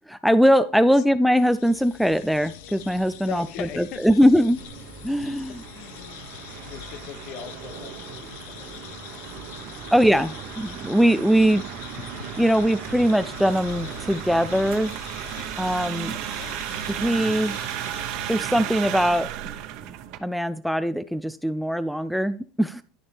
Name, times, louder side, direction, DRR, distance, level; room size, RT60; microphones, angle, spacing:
voice 1, 0.1-4.6 5.0-5.6 9.9-11.6 12.2-14.9 15.6-16.1 16.9-17.6 18.3-19.3 20.2-22.8, equal, ahead, 0.3 m, -21 dB
sound 1, 1.3-19.1, left 9 dB, 80° left, 1.0 m, -43 dB
voice 2, 3.3-4.2 5.7-6.2 6.7-9.9 10.2-10.3 15.7-16.7, left 10 dB, 50° left, 0.8 m, -41 dB
sound 2, 4.6-20.2, right 11 dB, 55° right, 1.1 m, -35 dB
11.5 x 7.0 x 3.4 m
supercardioid pair, 150°, 0 cm